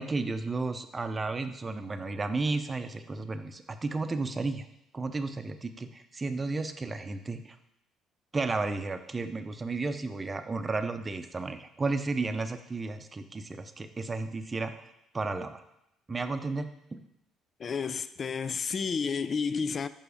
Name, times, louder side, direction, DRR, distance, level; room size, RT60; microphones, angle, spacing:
voice 1, 0.0-4.7 4.9-7.6 8.3-14.8 15.1-15.6 16.1-17.0, right 3 dB, 30° right, 0.6 m, -33 dB
voice 2, 17.6-19.9, left 5 dB, 45° left, 0.4 m, -31 dB
5.7 x 4.7 x 5.2 m
supercardioid pair, 65°, 0 cm